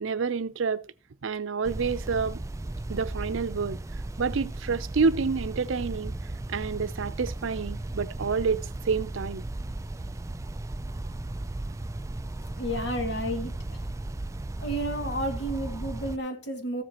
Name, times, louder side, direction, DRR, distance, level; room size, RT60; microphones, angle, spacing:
voice 1, 0.0-0.8 1.2-2.4 2.9-3.8 4.2-6.1 6.5-9.5, right 5 dB, 85° right, 0.6 m, -28 dB
sound 1, 1.6-16.2, right 2 dB, 15° right, 0.3 m, -36 dB
voice 2, 12.5-13.5 13.8-13.9 14.6-16.8, right 1 dB, 60° left, 2.2 m, -31 dB
14.5 x 7.5 x 2.9 m
head